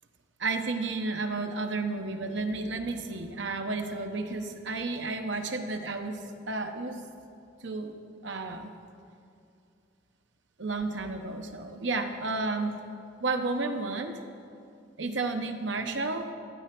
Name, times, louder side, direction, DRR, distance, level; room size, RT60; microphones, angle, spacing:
voice 1, 0.4-7.0 7.6-8.0 8.2-8.7 10.6-12.7 13.2-14.2 15.0-16.3, right 3 dB, 70° right, 5 dB, 0.9 m, -32 dB
13.0 x 8.7 x 6.0 m, 2.5 s
head